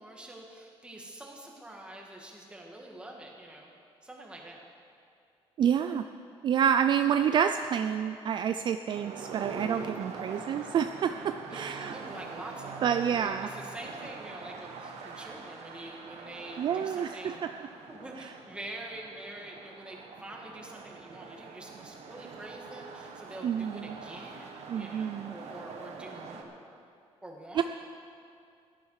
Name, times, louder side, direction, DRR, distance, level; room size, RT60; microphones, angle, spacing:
voice 1, 0.0-3.7 4.0-4.6 11.4-17.4 17.9-26.8 27.2-27.6, right 1 dB, 10° right, -1 dB, 1.8 m, -46 dB
voice 2, 5.6-6.0 6.4-11.9 12.8-13.5 16.6-17.5 23.4-23.7 24.7-25.3 27.6-27.7, right 8 dB, 45° right, 8 dB, 0.4 m, -28 dB
sound 1, 8.9-26.4, right 4 dB, 85° right, 1.4 m, -44 dB
16.0 x 13.0 x 4.8 m, 2.4 s
cardioid pair, 170°, 11 cm